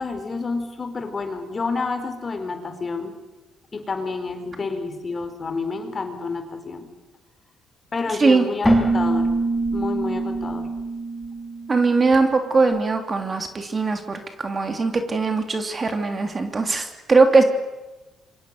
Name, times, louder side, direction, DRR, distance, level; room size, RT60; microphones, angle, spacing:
voice 1, 0.0-3.1 3.7-6.9 7.9-9.3 9.7-10.7, left 4 dB, 35° left, 7 dB, 4.3 m, -29 dB
Keyboard (musical), 8.6-12.3, right 2 dB, 5° left, 5.2 m, -24 dB
voice 2, 11.7-17.4, right 3 dB, 30° right, 6 dB, 3.1 m, -20 dB
27.5 x 24.5 x 6.8 m, 1.1 s
cardioid pair, 90°, 0 cm